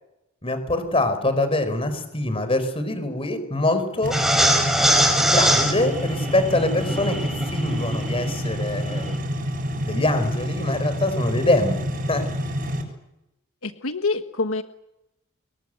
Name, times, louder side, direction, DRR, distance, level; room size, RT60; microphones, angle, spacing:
voice 1, 0.4-4.2 5.2-9.2 9.9-12.3, left 2 dB, 30° left, 10 dB, 4.7 m, -24 dB
sound 1, 4.0-12.8, equal, 45° right, 7.5 m, -28 dB
sound 2, 4.1-9.2, right 1 dB, ahead, 4.5 m, -23 dB
voice 2, 13.6-14.6, left 3 dB, 85° left, 8 dB, 1.4 m, -26 dB
27.0 x 22.5 x 8.0 m, 0.87 s
head